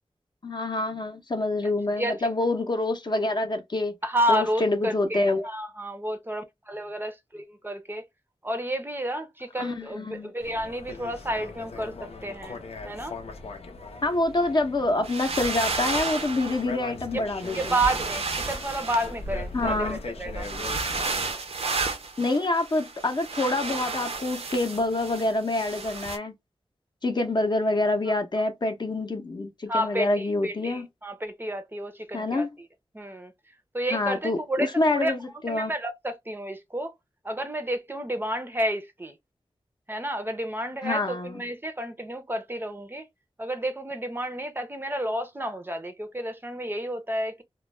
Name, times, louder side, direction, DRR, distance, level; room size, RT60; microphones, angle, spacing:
voice 1, 0.4-3.9 4.3-5.5 9.6-10.3 14.0-17.7 19.5-20.0 22.2-26.4 27.0-30.9 32.1-32.5 33.9-35.2 35.4-35.7 40.8-41.4, left 2 dB, 45° left, 0.6 m, -26 dB
voice 2, 2.0-2.3 4.0-8.0 8.4-12.6 12.8-13.2 17.1-17.2 17.5-20.5 28.1-28.2 29.7-32.5 32.9-33.3 33.7-35.1 35.5-36.9 37.2-39.1 39.9-43.1 43.4-47.4, right 1 dB, 20° right, 0.5 m, -30 dB
sound 1, 10.4-21.3, left 3 dB, 90° left, 0.6 m, -39 dB
sound 2, 15.0-16.7 17.4-19.6 20.4-26.2, right 4 dB, 80° right, 0.6 m, -32 dB
2.2 x 2.0 x 3.1 m
wide cardioid pair, 85°, 10 cm